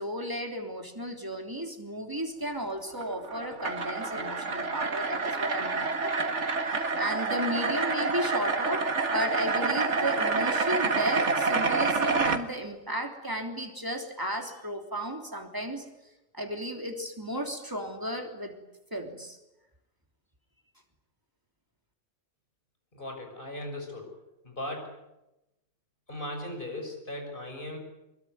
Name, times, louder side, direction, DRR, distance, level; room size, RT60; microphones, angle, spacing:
voice 1, 0.0-15.8 16.3-18.5 18.9-19.4, equal, 15° right, 3 dB, 3.3 m, -34 dB
sound 1, 2.9-12.4, right 4 dB, 70° right, 2.1 m, -28 dB
voice 2, 22.9-24.1 24.4-25.0 26.1-27.8, left 1 dB, 45° left, 3 dB, 6.9 m, -38 dB
25.5 x 22.0 x 9.6 m, 0.96 s
omnidirectional pair, 1.3 m